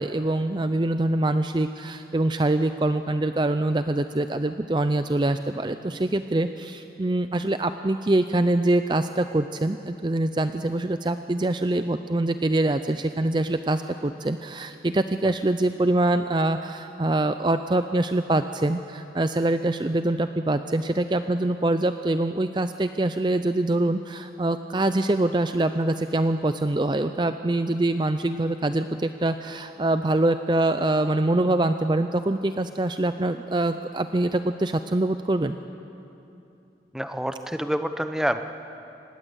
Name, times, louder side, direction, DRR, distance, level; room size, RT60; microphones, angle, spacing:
voice 1, 0.0-35.6, right 2 dB, 25° right, 9 dB, 0.5 m, -24 dB
voice 2, 36.9-38.4, equal, 5° right, 8 dB, 0.8 m, -27 dB
26.0 x 20.0 x 8.1 m, 2.8 s
head